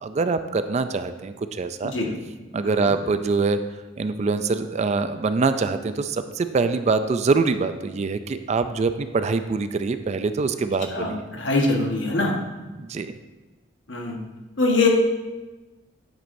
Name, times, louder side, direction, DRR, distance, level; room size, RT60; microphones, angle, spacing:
voice 1, 0.0-1.9 2.5-3.6 4.0-11.2 12.8-13.1, right 4 dB, 35° right, 10 dB, 0.4 m, -24 dB
voice 2, 2.6-2.9 10.9-12.3 13.9-14.2 14.6-14.9, left 3 dB, 70° left, 1 dB, 1.3 m, -23 dB
9.1 x 8.2 x 2.6 m, 1.2 s
head